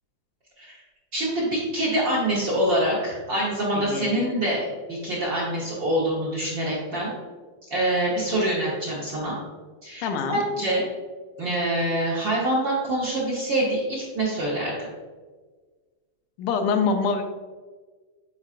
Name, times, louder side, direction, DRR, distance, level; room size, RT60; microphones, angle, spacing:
voice 1, 1.1-7.1 7.7-9.3 9.8-10.8 11.4-14.9, right 1 dB, 60° right, -6 dB, 1.2 m, -25 dB
voice 2, 3.8-4.3 10.0-10.4 16.4-17.2, left 5 dB, 85° left, 5 dB, 2.2 m, -25 dB
8.5 x 4.7 x 2.5 m, 1.4 s
omnidirectional pair, 3.5 m